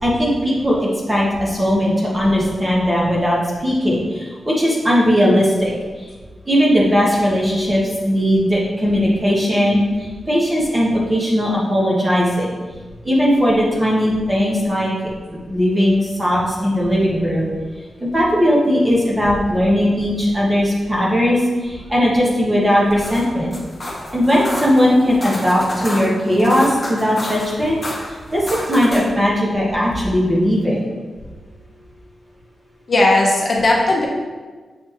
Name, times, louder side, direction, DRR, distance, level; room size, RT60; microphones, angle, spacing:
voice 1, 0.0-6.1 6.4-12.5 13.0-14.9 15.5-17.5 18.0-23.5 24.1-27.8 28.3-30.9, equal, 15° right, -5 dB, 1.3 m, -18 dB
sound 1, 22.8-29.2, left 1 dB, 25° left, 1.1 m, -31 dB
voice 2, 32.9-34.1, left 2 dB, 40° left, -2 dB, 0.8 m, -16 dB
7.3 x 4.4 x 3.0 m, 1.4 s
wide cardioid pair, 155°, 0 cm